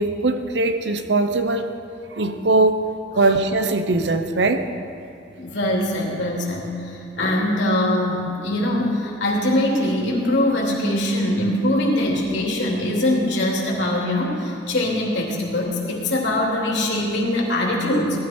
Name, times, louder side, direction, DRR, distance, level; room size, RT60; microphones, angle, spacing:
voice 1, 0.0-1.7 2.1-2.8 3.1-4.6, right 2 dB, 75° right, 8 dB, 0.9 m, -20 dB
voice 2, 5.4-18.2, left 1 dB, 85° left, -3 dB, 2.9 m, -22 dB
18.5 x 13.0 x 4.5 m, 2.8 s
head